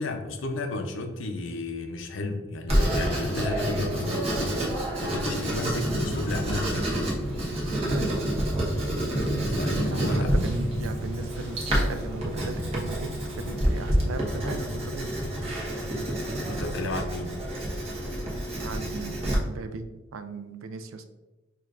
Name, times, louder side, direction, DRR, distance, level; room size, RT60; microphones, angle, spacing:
voice 1, 0.0-7.1 9.5-10.3 16.4-17.4, left 2 dB, 65° left, 5 dB, 0.5 m, -33 dB
Writing, 2.7-19.3, right 1 dB, 30° right, 0.9 m, -29 dB
sound 1, 5.8-14.4, right 1 dB, 5° right, 0.7 m, -33 dB
voice 2, 7.9-8.3 9.8-15.1 18.6-21.0, right 3 dB, 80° right, 8 dB, 0.4 m, -38 dB
6.3 x 2.5 x 2.4 m, 1.1 s
head